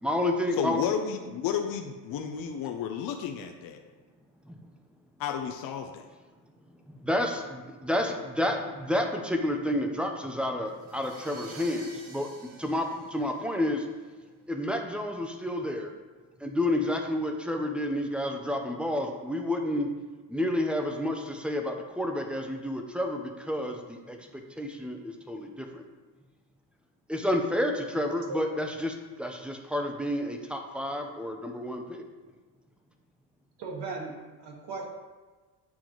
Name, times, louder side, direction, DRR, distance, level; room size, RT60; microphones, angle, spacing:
voice 1, 0.0-0.8 4.4-4.6 6.7-13.9 14.5-15.9 16.4-19.9 20.3-25.8 27.1-32.0, left 1 dB, 5° right, 3 dB, 0.4 m, -30 dB
voice 2, 0.6-3.8 5.2-6.1, left 8 dB, 55° left, 4 dB, 0.5 m, -32 dB
sound 1, 10.7-13.9, equal, 45° right, 1.4 m, -48 dB
voice 3, 33.6-34.9, right 3 dB, 75° right, 0 dB, 1.3 m, -37 dB
8.5 x 3.8 x 3.0 m, 1.3 s
cardioid pair, 130°, 42 cm